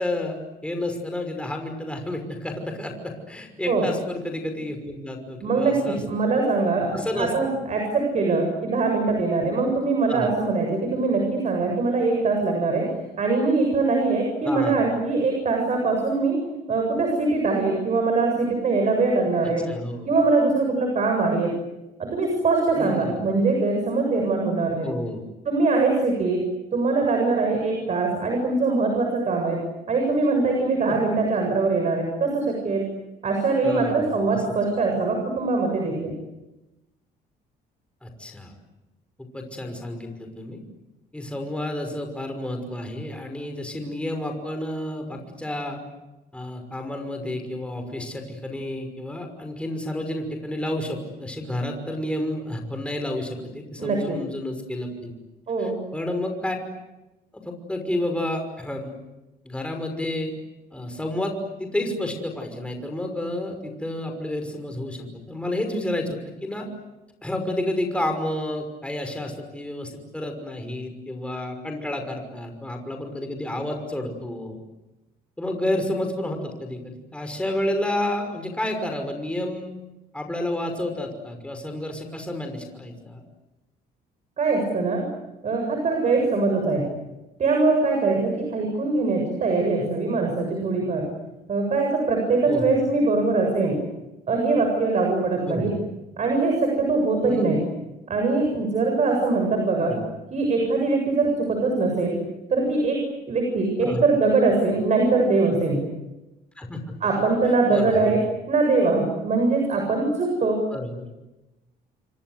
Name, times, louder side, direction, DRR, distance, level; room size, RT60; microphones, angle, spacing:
voice 1, 0.0-6.3 6.9-7.6 10.1-10.3 14.4-14.8 19.7-20.1 22.8-23.3 24.8-25.2 30.9-31.0 33.6-34.4 38.0-38.5 39.2-40.6 41.1-45.8 46.3-55.1 55.6-56.6 57.3-58.9 59.4-60.3 60.7-66.7 67.2-74.6 75.4-79.7 80.1-83.2 92.5-92.8 95.5-95.8 97.3-97.5 99.8-100.1 103.8-104.1 106.6-106.8 107.7-108.3 110.7-111.1, left 1 dB, 5° left, 4 dB, 5.8 m, -30 dB
voice 2, 5.4-12.8 13.2-16.4 16.7-19.6 20.0-21.5 22.0-24.9 25.5-26.4 26.7-29.6 29.9-32.8 33.2-36.1 53.8-54.2 55.5-55.8 84.4-85.0 85.4-86.8 87.4-91.1 91.5-93.8 94.3-95.7 96.2-97.6 98.1-99.9 100.3-102.2 102.5-103.0 103.3-105.8 107.0-108.2 108.5-110.6, right 3 dB, 45° right, 3 dB, 7.5 m, -22 dB
29.5 x 24.0 x 8.1 m, 1.0 s
cardioid pair, 110°, 17 cm